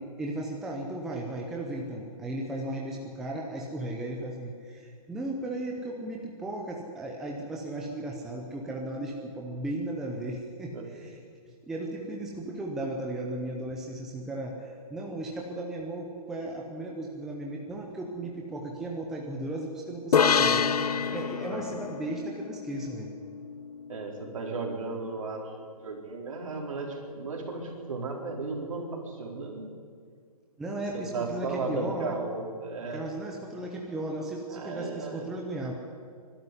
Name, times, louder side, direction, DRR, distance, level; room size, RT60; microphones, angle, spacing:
voice 1, 0.0-11.2 11.4-23.1 30.6-32.2 32.9-35.7, right 1 dB, ahead, -1 dB, 0.6 m, -36 dB
sound 1, 20.1-23.6, left 7 dB, 70° left, 1.0 m, -27 dB
voice 2, 23.9-29.7 30.9-33.0 34.5-35.2, right 3 dB, 55° right, 1 dB, 4.3 m, -35 dB
23.5 x 12.5 x 9.6 m, 2.1 s
hypercardioid pair, 175°, 20 cm